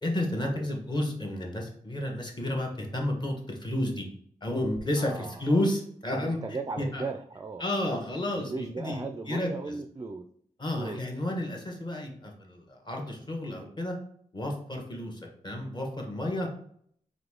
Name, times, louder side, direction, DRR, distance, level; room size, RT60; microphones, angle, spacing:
voice 1, 0.0-4.0 4.4-6.4 6.8-7.0 7.6-8.5 8.8-9.7 10.6-13.9 14.3-16.5, left 1 dB, 30° left, 1 dB, 1.2 m, -31 dB
voice 2, 5.0-5.6 6.2-7.7 8.3-10.3 10.8-11.0, right 3 dB, 25° right, 6 dB, 0.4 m, -37 dB
4.0 x 3.1 x 3.6 m, 0.63 s
cardioid pair, 80°, 15 cm